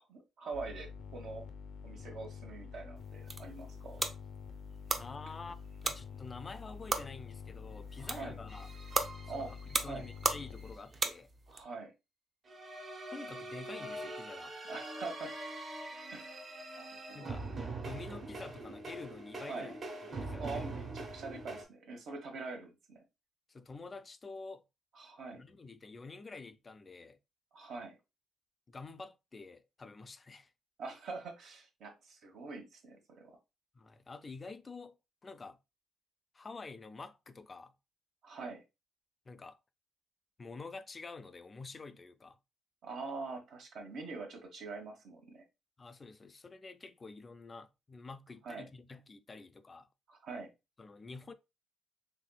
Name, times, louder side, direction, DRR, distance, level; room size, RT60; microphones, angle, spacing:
voice 1, 0.0-1.4 1.8-4.0 8.0-8.4 9.3-10.1 11.5-11.9 14.7-15.3 16.1-16.4 16.7-17.3 19.5-19.7 20.4-23.0 25.0-25.4 27.5-28.0 30.8-33.4 38.2-38.6 42.8-45.4 48.4-48.7 50.1-50.5, right 3 dB, 75° right, 1.1 m, -44 dB
sound 1, 0.5-10.8, left 6 dB, 85° left, 0.5 m, -47 dB
sound 2, 3.0-11.6, right 3 dB, 35° right, 0.6 m, -38 dB
voice 2, 5.0-5.6 5.8-8.7 9.3-11.3 13.1-14.6 17.1-17.4 17.8-19.8 20.0-20.7 23.5-24.6 25.3-27.2 28.7-30.5 33.7-35.0 35.2-35.6 36.3-37.7 39.3-39.6 40.4-42.4 45.8-49.9 50.8-51.3, left 3 dB, 30° left, 0.3 m, -48 dB
sound 3, 8.5-10.7 12.5-21.6, right 2 dB, 50° right, 1.4 m, -44 dB
4.0 x 3.1 x 2.2 m
cardioid pair, 90°, 0 cm